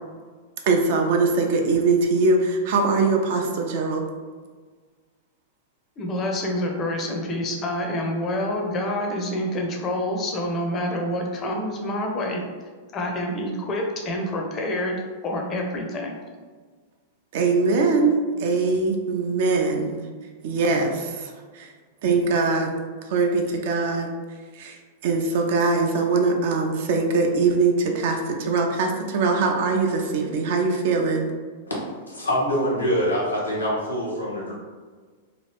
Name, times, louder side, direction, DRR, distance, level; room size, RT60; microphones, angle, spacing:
voice 1, 0.6-4.0 17.3-20.1 20.4-21.7 22.0-22.8 23.1-24.1 24.5-31.3, right 3 dB, 55° right, 2 dB, 0.5 m, -22 dB
voice 2, 6.0-12.4 12.9-16.2, left 1 dB, 30° left, 1 dB, 0.6 m, -27 dB
voice 3, 32.0-34.5, equal, 90° left, -6 dB, 1.0 m, -24 dB
2.9 x 2.3 x 3.3 m, 1.5 s
figure-of-eight pair, 95°, 0 cm